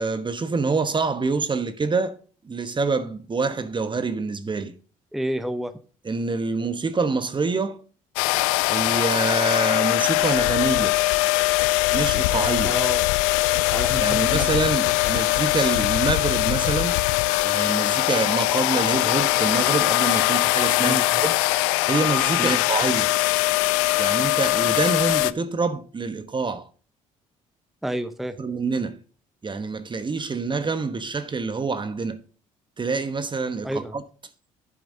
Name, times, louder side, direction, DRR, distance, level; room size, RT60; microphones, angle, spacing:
voice 1, 0.0-2.2 2.4-4.7 6.0-7.8 8.7-11.0 11.9-12.8 14.0-17.0 17.4-23.1 24.0-26.7 28.4-29.0 29.4-32.2 32.8-34.0, right 4 dB, 25° right, 1.0 m, -26 dB
voice 2, 5.1-5.7 12.6-13.1 13.5-14.8 15.0-15.2 20.8-21.0 22.4-22.6 27.8-28.4 33.6-34.0, right 1 dB, ahead, 0.9 m, -30 dB
sound 1, 8.2-25.3, left 20 dB, 70° left, 0.4 m, -21 dB
10.5 x 8.8 x 2.7 m
hypercardioid pair, 55°, 18 cm